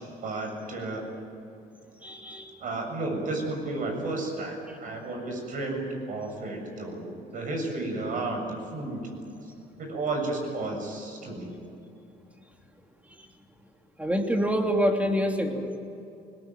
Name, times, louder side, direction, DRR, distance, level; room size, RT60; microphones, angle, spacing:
voice 1, 0.2-1.0 2.6-7.0 7.3-9.0 9.8-11.5, right 2 dB, 50° right, 3 dB, 7.2 m, -32 dB
voice 2, 2.0-2.5 14.0-15.8, equal, 10° right, 3 dB, 3.0 m, -26 dB
21.0 x 20.5 x 9.2 m, 2.8 s
cardioid pair, 110°, 17 cm